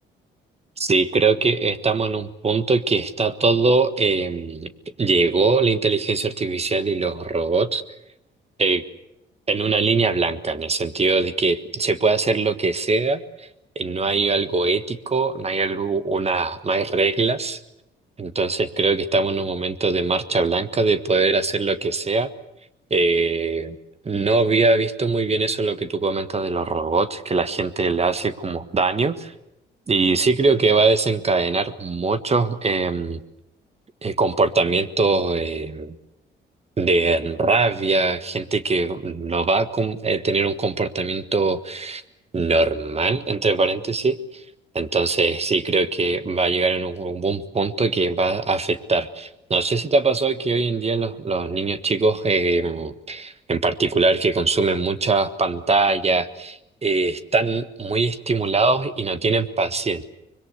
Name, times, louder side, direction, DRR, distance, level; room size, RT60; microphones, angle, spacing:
voice 1, 0.8-4.7 5.0-7.8 8.6-8.8 9.5-13.5 13.7-17.6 18.2-22.3 22.9-23.8 24.0-29.3 29.9-33.2 34.0-35.9 36.8-42.0 42.3-44.4 44.7-60.0, right 3 dB, 30° right, 12 dB, 1.5 m, -22 dB
24.5 x 22.0 x 8.1 m, 0.85 s
cardioid pair, 90°, 20 cm